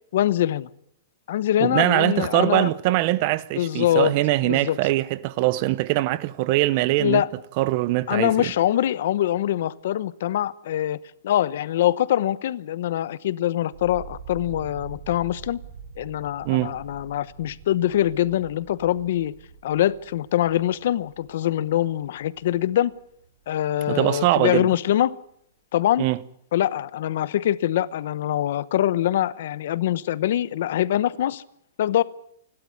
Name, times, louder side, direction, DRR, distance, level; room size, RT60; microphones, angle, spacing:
voice 1, 0.1-0.7 1.3-2.7 3.6-4.1 4.4-4.8 7.0-7.3 8.1-15.6 16.0-19.3 19.6-22.9 23.5-25.1 25.7-26.1 26.5-31.4 31.8-32.0, left 12 dB, 55° left, 0.9 m, -23 dB
voice 2, 1.6-7.2 7.6-8.5 16.4-16.7 23.9-24.7 26.0-26.2, right 17 dB, 35° right, 0.8 m, -22 dB
sound 1, 13.7-23.7 24.0-24.7, right 6 dB, 80° right, 4.6 m, -45 dB
29.0 x 12.5 x 9.6 m
hypercardioid pair, 170°, 0 cm